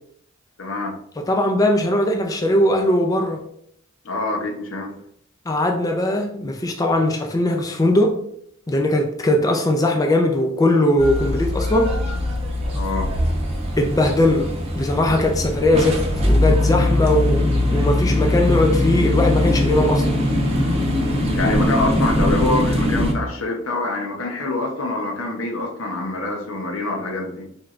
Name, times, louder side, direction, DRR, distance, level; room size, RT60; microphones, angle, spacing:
voice 1, 0.6-1.0 4.0-4.9 12.7-13.1 21.4-27.5, left 2 dB, 75° left, 1 dB, 0.8 m, -25 dB
voice 2, 1.2-3.4 5.5-8.2 8.7-12.0 13.8-20.2, left 1 dB, 15° left, 2 dB, 0.3 m, -20 dB
sound 1, 11.0-23.1, left 1 dB, 30° right, 0.8 m, -21 dB
4.4 x 3.1 x 2.4 m, 0.68 s
head